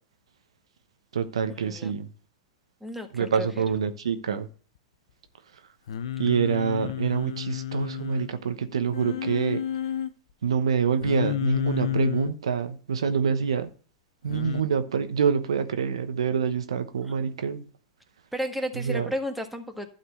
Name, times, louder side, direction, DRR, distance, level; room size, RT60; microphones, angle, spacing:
voice 1, 1.1-2.1 3.1-4.5 6.2-9.6 10.4-13.7 14.2-17.6 18.7-19.1, right 6 dB, 80° right, 9 dB, 1.0 m, -26 dB
voice 2, 2.8-3.6 18.3-19.9, equal, ahead, 5 dB, 1.6 m, -33 dB
Singing, 5.9-8.3 8.9-10.1 11.0-12.3 14.3-14.6, left 10 dB, 75° left, 0.7 m, -30 dB
11.5 x 4.3 x 6.4 m, 0.40 s
hypercardioid pair, 105°, 3 cm